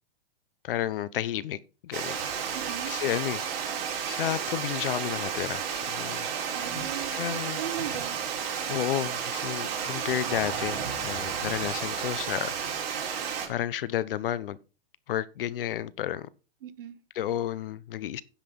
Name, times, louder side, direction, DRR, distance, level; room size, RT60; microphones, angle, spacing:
voice 1, 0.6-2.2 2.9-3.7 4.1-6.3 7.1-7.6 8.7-12.9 13.5-14.6 15.1-16.3 17.1-18.2, left 12 dB, 70° left, 0.9 m, -32 dB
Water, 1.9-13.5, right 7 dB, 45° right, 4.4 m, -32 dB
voice 2, 2.5-2.9 6.5-7.2 7.5-8.2 16.6-17.0, right 11 dB, 70° right, 1.3 m, -38 dB
10.5 x 6.0 x 5.3 m
hypercardioid pair, 140°, 29 cm